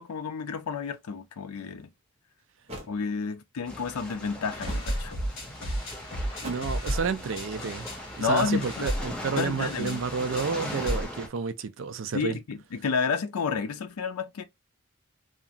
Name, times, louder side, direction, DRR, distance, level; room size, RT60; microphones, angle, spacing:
voice 1, 0.0-1.9 2.9-5.1 8.2-8.9 9.4-10.0 12.1-14.4, left 5 dB, 90° left, 0.5 m, -30 dB
sound 1, 1.8-1.9 2.7-3.0 4.6-5.0 6.4-6.8, equal, 30° right, 0.8 m, -41 dB
sound 2, 3.7-11.3, left 1 dB, 5° left, 0.5 m, -40 dB
sound 3, 4.5-11.0, equal, 55° left, 1.4 m, -34 dB
voice 2, 6.4-7.9 8.2-12.4, right 5 dB, 60° right, 0.4 m, -30 dB
2.8 x 2.5 x 2.5 m
head